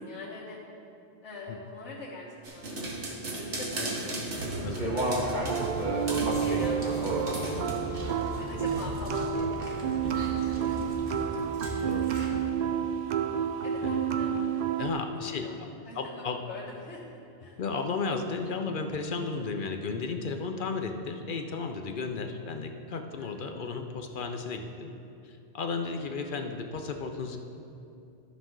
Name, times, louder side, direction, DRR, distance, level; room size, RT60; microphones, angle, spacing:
voice 1, 0.0-0.6 1.2-2.3 2.5-5.7 6.2-11.0 13.6-14.9 15.2-17.6 23.2-23.3, left 2 dB, 90° left, -8 dB, 1.6 m, -44 dB
sound 1, 2.4-5.7 6.1-6.4 7.0-7.7, right 2 dB, 80° right, 1.5 m, -36 dB
sound 2, 4.4-12.5, right 1 dB, 40° right, 1.5 m, -34 dB
sound 3, 5.5-14.9, right 7 dB, 60° right, 0.5 m, -30 dB
voice 2, 14.8-15.5 15.9-16.4 17.6-24.9 25.2-27.4, left 4 dB, 55° left, 5 dB, 0.7 m, -34 dB
13.5 x 6.0 x 3.8 m, 2.7 s
omnidirectional pair, 1.2 m